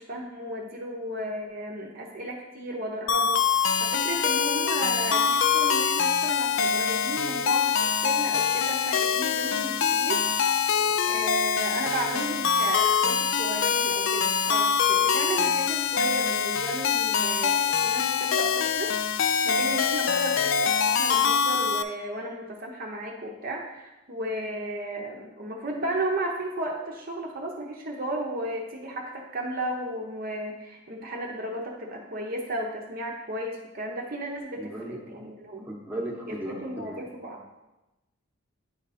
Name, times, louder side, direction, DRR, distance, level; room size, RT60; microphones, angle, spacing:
voice 1, 0.0-7.7 8.0-10.2 11.0-18.9 19.4-35.7 36.3-37.4, right 1 dB, 40° right, 0 dB, 0.7 m, -34 dB
sound 1, 3.1-21.8, left 7 dB, 60° left, 0.3 m, -24 dB
voice 2, 34.6-35.0 35.7-37.0, right 1 dB, 10° right, -2 dB, 0.9 m, -36 dB
9.0 x 3.6 x 4.1 m, 1.0 s
head